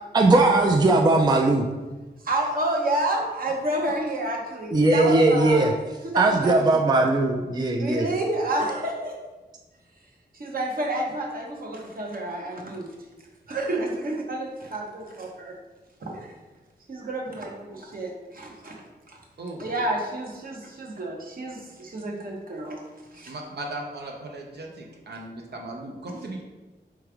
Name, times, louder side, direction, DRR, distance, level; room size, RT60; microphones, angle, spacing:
voice 1, 0.1-1.7 4.7-5.7 6.1-8.1, right 2 dB, 25° right, 3 dB, 0.3 m, -19 dB
voice 2, 2.2-5.7 6.0-6.8 7.8-9.2 10.4-12.9 13.5-15.5 16.0-16.3 16.9-18.8 19.1-19.2 19.6-22.8 23.1-23.3 26.1-26.2, right 1 dB, 55° right, -1 dB, 1.0 m, -29 dB
voice 3, 23.3-26.4, right 2 dB, 75° right, 0 dB, 0.7 m, -37 dB
3.4 x 3.1 x 4.8 m, 1.2 s
wide cardioid pair, 95°, 18 cm